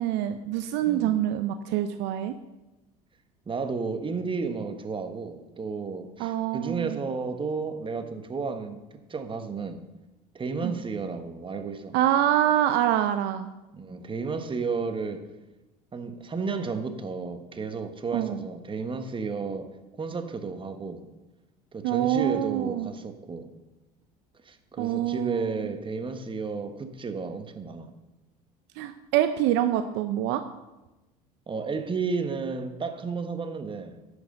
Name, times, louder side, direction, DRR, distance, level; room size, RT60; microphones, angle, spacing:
voice 1, 0.0-2.4 6.2-7.0 10.6-10.7 11.9-13.5 18.1-18.5 21.8-22.9 24.8-25.7 28.8-30.4, right 12 dB, 60° right, 10 dB, 0.6 m, -26 dB
voice 2, 0.8-1.2 3.5-8.8 9.1-9.8 10.3-12.0 13.7-15.3 15.9-19.7 20.0-21.1 21.7-23.5 24.4-27.9 31.5-34.0, right 4 dB, 25° right, 8 dB, 1.3 m, -32 dB
10.5 x 6.6 x 6.5 m, 1.1 s
hypercardioid pair, 70°, 20 cm